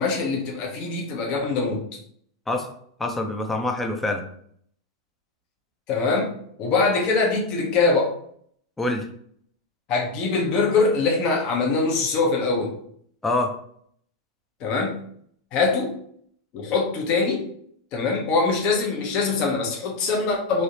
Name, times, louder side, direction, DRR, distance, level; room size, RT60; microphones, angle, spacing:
voice 1, 0.0-1.8 5.9-6.3 6.6-8.1 9.9-12.7 14.6-15.0 15.5-15.9 16.5-17.4 17.9-20.6, left 4 dB, 45° left, -1 dB, 0.8 m, -23 dB
voice 2, 3.0-4.2 8.8-9.0 13.2-13.5, left 2 dB, 10° left, 3 dB, 0.6 m, -25 dB
3.2 x 2.8 x 2.7 m, 0.63 s
hypercardioid pair, 110°, 2 cm